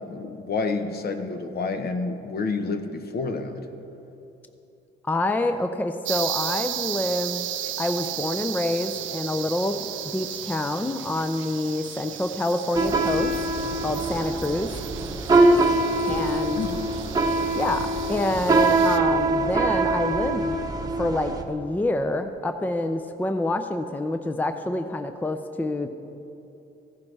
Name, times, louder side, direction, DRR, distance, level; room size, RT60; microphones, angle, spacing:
voice 1, 0.0-3.7 16.6-16.8, left 4 dB, 50° left, 7 dB, 0.9 m, -29 dB
voice 2, 5.0-7.5 7.8-13.3 13.8-14.7 16.1-16.6 17.5-20.6 21.0-25.9, left 2 dB, 10° left, 8 dB, 0.5 m, -27 dB
sound 1, 6.0-19.0, right 12 dB, 75° right, 0.5 m, -35 dB
sound 2, 12.7-21.4, right 2 dB, 20° right, 1.0 m, -23 dB
15.0 x 10.5 x 3.3 m, 2.8 s
cardioid pair, 90°, 20 cm